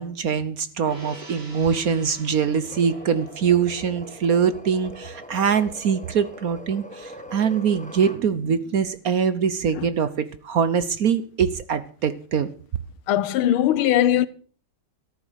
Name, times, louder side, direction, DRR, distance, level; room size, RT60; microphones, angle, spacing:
voice 1, 0.0-12.5, right 7 dB, 55° right, 1.1 m, -23 dB
Gong, 0.8-7.5 7.8-7.9, right 1 dB, 30° right, 3.2 m, -47 dB
sound 1, 2.4-8.2, left 1 dB, 5° left, 1.2 m, -42 dB
voice 2, 13.1-14.3, left 11 dB, 90° left, 1.7 m, -20 dB
14.0 x 11.0 x 6.5 m
omnidirectional pair, 2.2 m